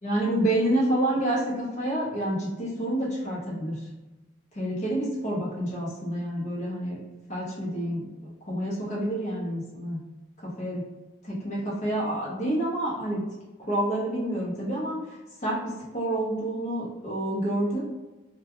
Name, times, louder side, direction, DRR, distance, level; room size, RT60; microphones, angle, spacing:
voice 1, 0.0-3.8 4.5-7.0 7.3-10.0 10.4-10.8 11.2-13.2 13.7-17.8, right 1 dB, 35° left, -6 dB, 0.8 m, -28 dB
2.2 x 2.2 x 2.9 m, 1.1 s
head